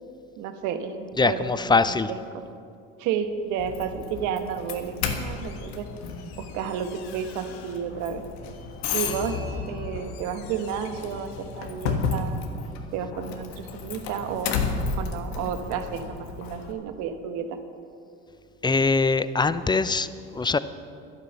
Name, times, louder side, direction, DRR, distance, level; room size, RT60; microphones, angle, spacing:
voice 1, 0.4-2.4 3.0-5.9 6.4-8.3 8.9-9.4 9.7-12.4 12.9-14.6 15.0-17.6, right 7 dB, 70° right, 8 dB, 1.2 m, -31 dB
voice 2, 1.2-2.1 18.6-20.6, left 4 dB, 15° left, 14 dB, 0.6 m, -22 dB
Doorbell, 3.6-16.7, left 5 dB, 85° left, 1.4 m, -33 dB
11.5 x 10.5 x 7.1 m, 2.4 s
hypercardioid pair, 70°, 31 cm